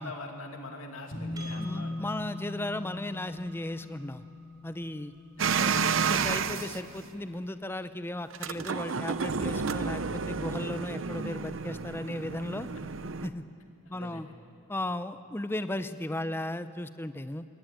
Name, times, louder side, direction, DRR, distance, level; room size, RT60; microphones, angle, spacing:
voice 1, 0.0-2.0 5.4-5.9 13.9-14.2, left 2 dB, 80° left, 4 dB, 2.5 m, -43 dB
sound 1, 1.1-7.7, left 2 dB, 40° left, 7.2 m, -41 dB
Percussion, 1.4-6.2, right 3 dB, 20° right, 2.9 m, -54 dB
voice 2, 1.6-4.2 4.6-5.1 5.6-12.7 13.2-13.4 13.9-14.3 14.7-17.4, left 1 dB, 10° left, 12 dB, 0.6 m, -36 dB
sound 2, 5.4-6.8 8.3-13.3, right 5 dB, 65° right, 0.7 m, -30 dB
22.0 x 18.0 x 9.2 m, 2.4 s
head